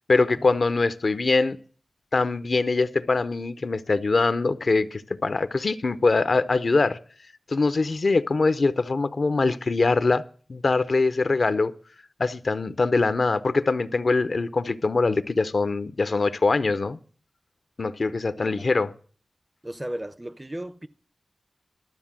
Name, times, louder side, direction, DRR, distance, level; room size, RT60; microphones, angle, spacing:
voice 1, 0.1-1.6 2.1-7.0 7.5-10.2 10.5-11.7 12.2-17.0 17.8-18.9, left 3 dB, 60° left, 0.7 m, -23 dB
voice 2, 19.6-20.9, right 1 dB, 15° right, 0.6 m, -35 dB
12.5 x 7.4 x 7.3 m
wide cardioid pair, 70°, 0 cm